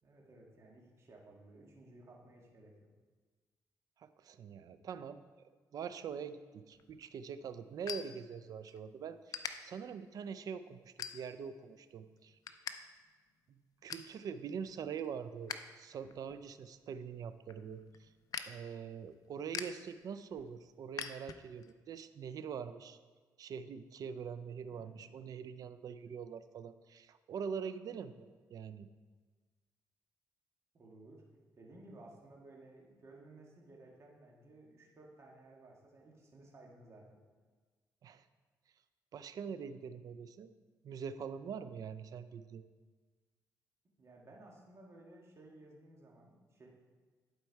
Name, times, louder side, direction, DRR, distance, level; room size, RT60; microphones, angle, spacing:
voice 1, 0.0-2.9 24.7-25.1 30.7-31.2 31.5-37.2 39.4-39.7 44.0-46.7, right 2 dB, 40° right, -1 dB, 1.7 m, -57 dB
voice 2, 4.0-5.2 5.7-12.4 13.5-18.1 18.4-23.0 23.4-28.9 38.0-38.2 39.1-40.5 40.8-42.6, right 6 dB, 60° right, 12 dB, 0.4 m, -44 dB
sound 1, 6.7-8.8 9.3-9.5 10.1-10.3 11.0-11.5 11.9-12.8 13.0-13.1 13.5-14.1 14.6-15.7 16.0-21.7, left 8 dB, 60° left, 0.4 m, -45 dB
10.5 x 4.5 x 4.6 m, 1.4 s
cardioid pair, 110°, 7 cm